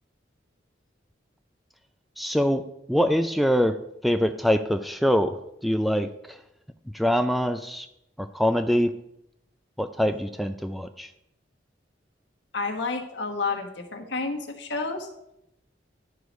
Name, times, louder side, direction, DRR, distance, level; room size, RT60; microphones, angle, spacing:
voice 1, 2.2-2.6 2.9-3.8 4.0-6.4 6.9-7.9 8.2-8.9 9.8-11.1, equal, ahead, 8 dB, 0.3 m, -24 dB
voice 2, 12.5-15.1, left 4 dB, 65° left, 3 dB, 1.3 m, -30 dB
11.5 x 4.8 x 5.2 m, 0.82 s
head